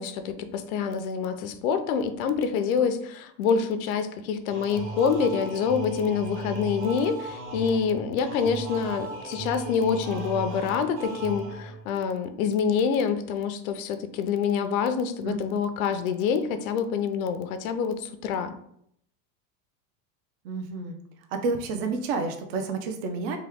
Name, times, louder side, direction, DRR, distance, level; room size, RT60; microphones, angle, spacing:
voice 1, 0.0-18.5, left 6 dB, 85° left, 9 dB, 0.6 m, -26 dB
sound 1, 4.5-11.9, right 3 dB, 40° right, 0.9 m, -36 dB
voice 2, 15.2-15.6 20.4-21.0 21.3-23.4, right 4 dB, 60° right, 6 dB, 0.6 m, -30 dB
3.0 x 2.3 x 3.4 m, 0.70 s
supercardioid pair, 135°, 41 cm